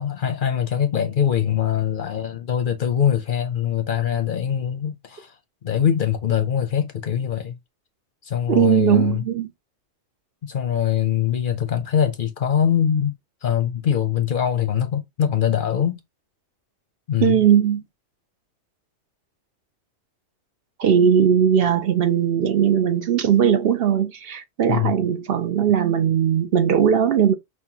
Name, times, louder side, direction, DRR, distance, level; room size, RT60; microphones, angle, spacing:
voice 1, 0.0-5.3 5.6-7.6 8.2-9.2 10.4-13.1 13.4-16.0 17.1-17.3 24.7-24.9, left 9 dB, 55° left, 0.7 m, -22 dB
voice 2, 8.5-9.5 17.2-17.8 20.8-27.3, right 8 dB, 60° right, 0.7 m, -19 dB
5.6 x 2.1 x 2.8 m
omnidirectional pair, 1.2 m